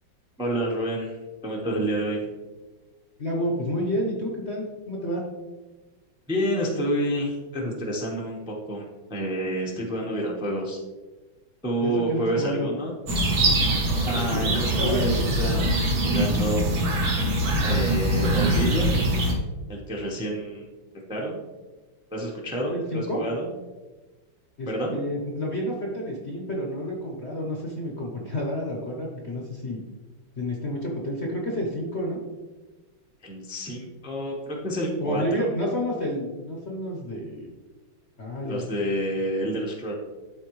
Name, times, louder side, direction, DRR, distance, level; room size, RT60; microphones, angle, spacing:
voice 1, 0.4-1.2 1.4-2.3 6.3-10.8 11.6-12.9 14.1-16.7 17.6-19.0 19.7-20.7 21.1-21.4 22.1-23.5 24.7-25.0 33.2-35.5 38.4-39.9, right 1 dB, 5° right, -1 dB, 0.7 m, -29 dB
voice 2, 3.2-5.2 11.8-12.7 14.1-15.0 22.7-23.2 24.6-29.8 30.4-32.2 35.0-37.5 38.2-38.6, equal, 40° left, -1 dB, 1.0 m, -30 dB
sound 1, 13.1-19.3, right 1 dB, 50° right, 1.6 m, -23 dB
12.5 x 4.2 x 3.1 m, 1.2 s
omnidirectional pair, 2.2 m